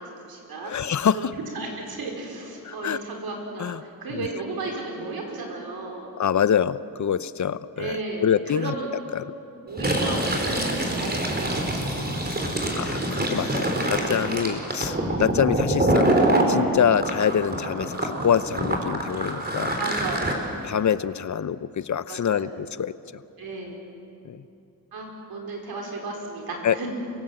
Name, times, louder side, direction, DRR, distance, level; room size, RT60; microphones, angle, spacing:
voice 1, 0.0-0.8 1.1-6.1 7.8-9.0 9.7-11.8 12.2-12.7 14.0-14.4 19.7-20.4 22.1-22.6 23.4-23.8 24.9-26.9, right 3 dB, 75° right, 1 dB, 5.1 m, -34 dB
voice 2, 0.6-1.3 2.6-3.0 3.6-3.8 4.1-4.3 6.2-8.7 9.1-9.3 12.7-16.2 16.5-19.8 20.6-22.9 24.2-24.4 26.6-26.8, left 8 dB, 50° left, 15 dB, 0.8 m, -25 dB
Fill (with liquid), 9.7-16.5 17.0-20.3, right 1 dB, 25° right, 4.1 m, -25 dB
29.0 x 17.5 x 7.9 m, 2.7 s
cardioid pair, 75°, 36 cm